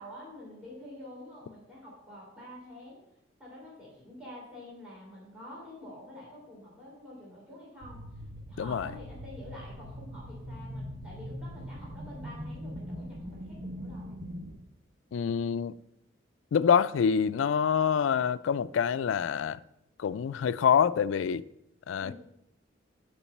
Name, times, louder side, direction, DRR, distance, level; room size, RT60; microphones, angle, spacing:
voice 1, 0.0-3.0 3.4-8.0 8.5-14.1 22.0-22.1, left 1 dB, 5° right, 3.1 m, -47 dB
sound 1, 7.8-14.6, equal, 50° right, 1.1 m, -41 dB
voice 2, 8.6-8.9 15.1-15.7 16.5-19.6 20.0-21.4 21.9-22.1, left 7 dB, 85° left, 0.3 m, -26 dB
7.0 x 5.2 x 7.1 m
head